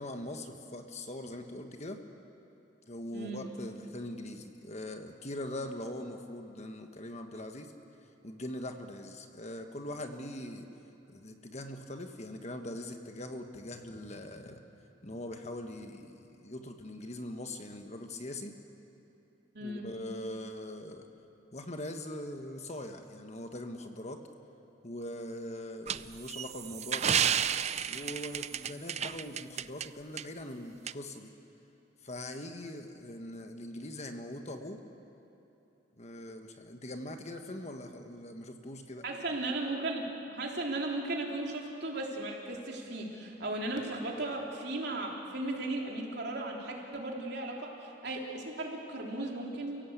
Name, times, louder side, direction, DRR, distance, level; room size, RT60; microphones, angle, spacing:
voice 1, 0.0-2.0 2.9-7.7 8.2-10.7 11.1-14.6 15.0-18.5 19.6-21.1 21.5-24.2 24.8-27.2 27.9-31.3 32.0-34.8 36.0-39.1, left 1 dB, 35° left, 5 dB, 1.5 m, -42 dB
voice 2, 3.1-3.5 19.5-19.9 39.0-49.8, right 2 dB, 60° right, -1 dB, 3.5 m, -36 dB
sound 1, 25.9-29.9 30.2-30.3 30.9-31.0, right 8 dB, 35° right, 0.5 m, -31 dB
30.0 x 16.5 x 8.2 m, 2.9 s
head